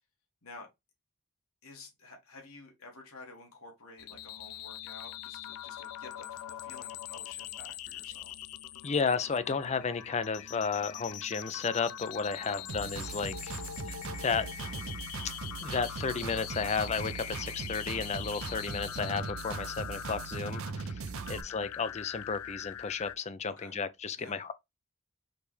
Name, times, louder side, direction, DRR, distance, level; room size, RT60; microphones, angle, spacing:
voice 1, 1.6-8.3 12.4-12.7 21.1-21.4 23.5-23.8 24.2-24.4, left 3 dB, 70° left, 2.0 m, -51 dB
sound 1, 4.0-23.2, left 11 dB, 90° left, 0.4 m, -43 dB
voice 2, 8.8-13.5 13.9-14.5 15.6-24.5, left 5 dB, 30° left, 0.5 m, -33 dB
sound 2, 12.7-21.4, right 4 dB, 65° right, 0.5 m, -40 dB
5.0 x 3.4 x 3.2 m
head